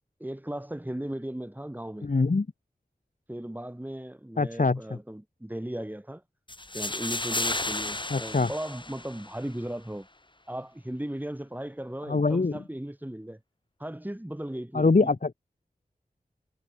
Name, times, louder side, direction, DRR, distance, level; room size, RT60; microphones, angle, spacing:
voice 1, 0.2-2.1 3.3-6.2 6.7-10.1 10.5-13.4 13.8-15.2, right 1 dB, 10° right, 4.1 m, -37 dB
voice 2, 2.0-2.5 4.4-5.0 8.1-8.5 12.1-12.6 14.7-15.3, left 3 dB, 55° left, 2.8 m, -24 dB
sound 1, 6.5-9.5, left 2 dB, 30° left, 2.3 m, -33 dB
wide cardioid pair, 60°, 16 cm